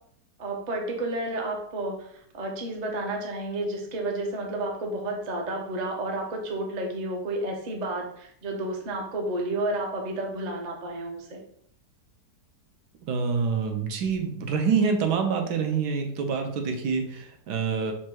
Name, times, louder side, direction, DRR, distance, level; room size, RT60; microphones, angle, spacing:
voice 1, 0.4-11.4, right 2 dB, 55° right, 1 dB, 0.4 m, -31 dB
voice 2, 13.1-17.9, right 5 dB, 75° right, 4 dB, 1.2 m, -26 dB
4.4 x 2.2 x 4.5 m, 0.68 s
omnidirectional pair, 1.8 m